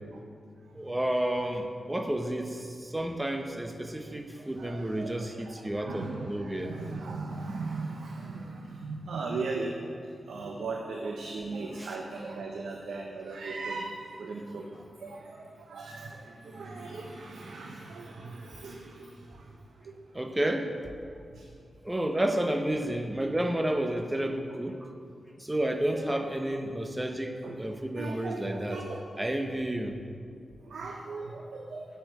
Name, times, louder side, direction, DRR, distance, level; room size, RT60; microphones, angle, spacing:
voice 1, 0.7-6.7 11.8-12.0 14.7-14.8 20.1-20.7 21.8-24.9 25.4-28.8 29.2-30.0, right 1 dB, 15° right, 5 dB, 0.9 m, -31 dB
voice 2, 4.6-9.7 10.3-14.7 15.0-19.1 19.9-20.0 25.0-25.1 25.9-26.3 27.4-27.6 28.0-29.0 30.7-31.9, right 3 dB, 90° right, 0 dB, 0.8 m, -38 dB
7.9 x 6.9 x 8.0 m, 2.3 s
cardioid pair, 80°, 0 cm